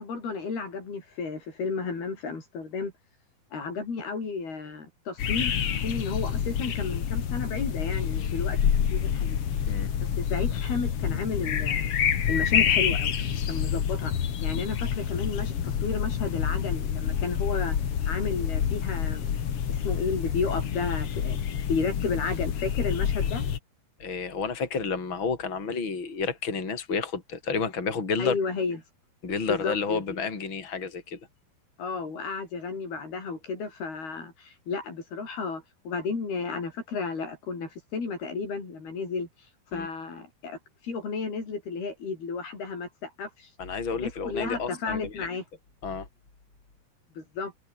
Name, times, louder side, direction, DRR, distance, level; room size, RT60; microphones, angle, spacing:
voice 1, 0.0-2.9 3.5-8.6 8.9-9.4 10.2-11.9 12.3-13.1 13.5-14.1 14.4-17.8 18.1-19.3 19.7-21.4 21.7-23.5 28.2-28.8 29.5-30.2 31.8-39.3 39.7-40.6 40.8-43.5 43.9-45.4 47.2-47.5, left 4 dB, 75° left, 8.6 m, -32 dB
sound 1, 5.2-23.6, left 8 dB, 45° left, 2.1 m, -27 dB
voice 2, 24.0-28.4 29.2-31.2 39.7-39.9 43.6-45.3 45.8-46.1, left 5 dB, 30° left, 5.1 m, -30 dB
omnidirectional pair, 4.5 m